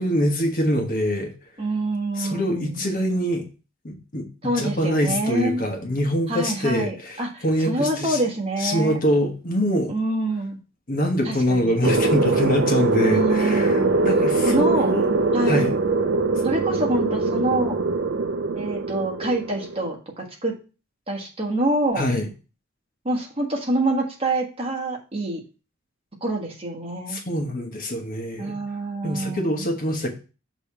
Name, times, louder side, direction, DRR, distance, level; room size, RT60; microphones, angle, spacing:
voice 1, 0.0-1.3 2.2-3.5 3.8-4.3 4.6-7.2 7.4-8.2 8.6-9.9 10.9-15.1 15.5-15.7 22.0-22.3 27.1-28.6 29.0-30.1, equal, 40° left, 3 dB, 1.2 m, -24 dB
voice 2, 1.6-2.8 4.4-5.6 6.3-9.0 9.9-10.6 11.2-11.7 13.0-14.0 14.4-15.0 15.3-15.7 16.4-17.8 18.5-20.6 21.1-22.1 23.0-25.4 26.2-27.2 28.4-29.7, right 1 dB, 25° right, 1 dB, 1.4 m, -26 dB
sound 1, 11.8-19.9, right 3 dB, 55° right, 0.5 m, -22 dB
6.9 x 3.0 x 5.7 m, 0.33 s
head